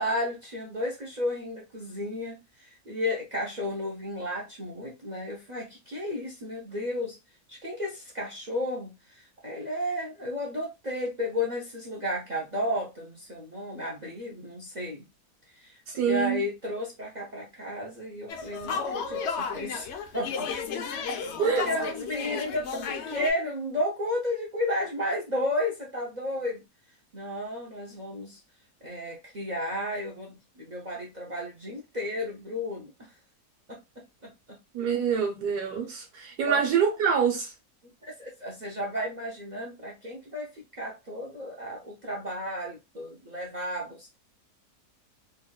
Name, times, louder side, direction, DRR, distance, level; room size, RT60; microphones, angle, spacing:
voice 1, 0.0-7.2 7.5-15.1 15.5-20.5 20.9-26.6 27.1-28.4 28.8-32.9 33.7-34.3 36.5-36.6 38.0-44.2, left 1 dB, 55° right, 0.4 m, -33 dB
voice 2, 15.9-16.4 21.4-21.7 34.7-37.5, right 7 dB, 75° right, 1.6 m, -26 dB
sound 1, 18.3-23.3, left 5 dB, 80° left, 0.6 m, -33 dB
4.0 x 2.4 x 2.2 m
omnidirectional pair, 1.7 m